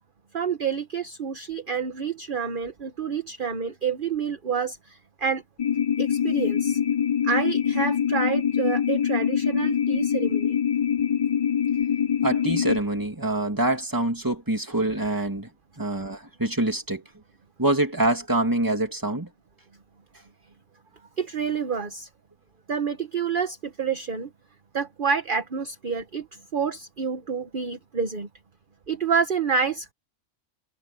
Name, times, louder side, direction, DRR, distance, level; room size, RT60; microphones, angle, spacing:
voice 1, 0.3-5.4 6.0-6.8 7.2-10.6 21.2-22.1 22.7-24.3 24.7-26.3 26.5-28.3 28.9-29.9, right 6 dB, 40° right, 1.2 m, -28 dB
sound 1, 5.6-12.8, left 8 dB, 55° left, 0.3 m, -24 dB
voice 2, 12.2-15.5 15.8-17.0 17.6-19.3, right 1 dB, 15° right, 2.3 m, -25 dB
omnidirectional pair, 1.5 m